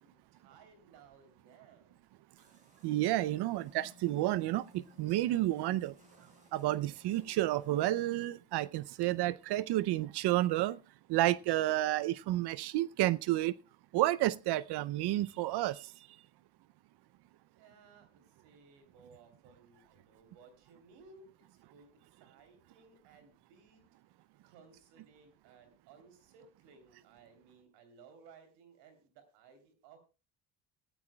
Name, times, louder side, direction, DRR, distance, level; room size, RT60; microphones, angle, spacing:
voice 1, 0.0-2.0 17.6-21.9 22.2-23.8 24.4-30.0, right 5 dB, 90° right, 3.4 m, -60 dB
sound 1, 2.4-8.2, left 1 dB, 20° right, 4.9 m, -62 dB
voice 2, 2.8-6.0 6.5-10.8 11.1-13.5 13.9-15.9, right 15 dB, 70° right, 0.6 m, -30 dB
17.0 x 13.5 x 2.3 m
supercardioid pair, 85°, 41 cm